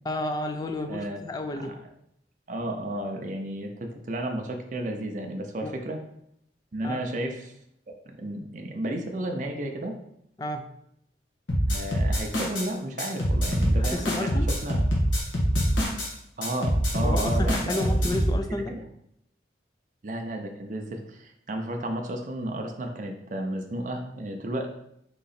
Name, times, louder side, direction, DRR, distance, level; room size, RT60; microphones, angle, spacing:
voice 1, 0.0-1.7 5.6-5.7 6.8-7.1 10.4-10.7 13.8-14.5 17.0-18.8, left 1 dB, 20° left, 6 dB, 0.3 m, -31 dB
voice 2, 0.9-1.2 1.5-1.8 2.5-6.0 6.7-7.5 8.2-9.9 11.7-14.8 16.4-18.2 18.7-18.8 20.0-24.7, right 1 dB, 40° right, 3 dB, 0.5 m, -33 dB
sound 1, 11.5-12.7 13.0-16.1 16.4-18.3, equal, 85° left, 1.2 m, -24 dB
3.8 x 3.0 x 4.1 m, 0.75 s
head